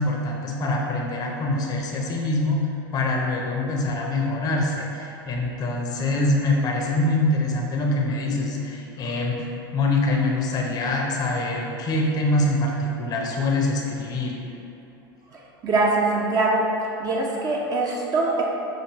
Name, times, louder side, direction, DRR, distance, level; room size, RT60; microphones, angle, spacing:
voice 1, 0.0-14.4, left 2 dB, 35° left, -1 dB, 0.6 m, -24 dB
voice 2, 15.3-16.7 17.0-18.4, right 3 dB, 30° right, -2 dB, 0.5 m, -23 dB
6.0 x 2.5 x 2.9 m, 2.8 s
hypercardioid pair, 90°, 12 cm